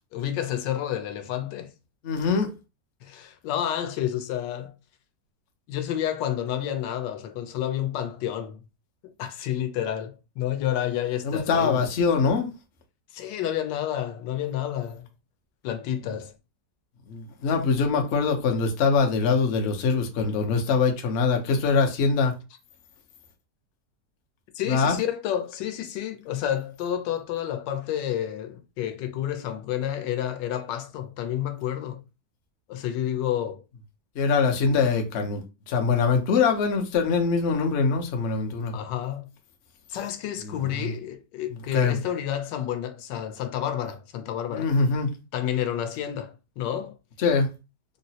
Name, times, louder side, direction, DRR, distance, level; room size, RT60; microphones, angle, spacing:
voice 1, 0.1-1.7 3.0-4.7 5.7-8.6 9.0-11.8 13.1-15.1 15.6-16.3 24.5-32.0 32.7-33.6 38.7-39.3 39.9-44.7 45.3-46.9, left 11 dB, 85° left, 1.3 m, -30 dB
voice 2, 2.0-2.5 11.2-12.5 17.1-22.3 24.7-25.0 34.1-38.7 40.4-40.9 41.5-42.0 44.5-45.1 47.2-47.5, left 5 dB, 65° left, 0.7 m, -23 dB
3.7 x 2.0 x 2.7 m
omnidirectional pair, 1.9 m